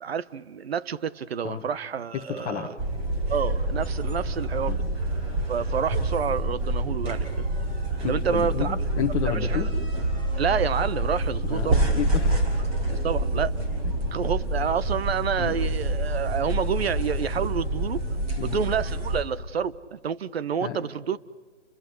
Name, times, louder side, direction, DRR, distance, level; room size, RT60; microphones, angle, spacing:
voice 1, 0.0-2.7 3.3-4.8 5.5-7.4 8.1-8.8 9.2-9.6 10.4-11.8 13.0-13.5 14.1-18.1 18.4-21.2, right 7 dB, 55° right, 1.1 m, -28 dB
voice 2, 2.1-2.7 4.7-4.8 8.0-9.7 11.4-12.4 15.4-15.6 18.4-18.6 20.6-20.8, left 9 dB, 15° left, 1.4 m, -31 dB
sound 1, 2.8-19.2, right 1 dB, 15° right, 3.2 m, -27 dB
30.0 x 22.0 x 7.9 m
hypercardioid pair, 155°, 37 cm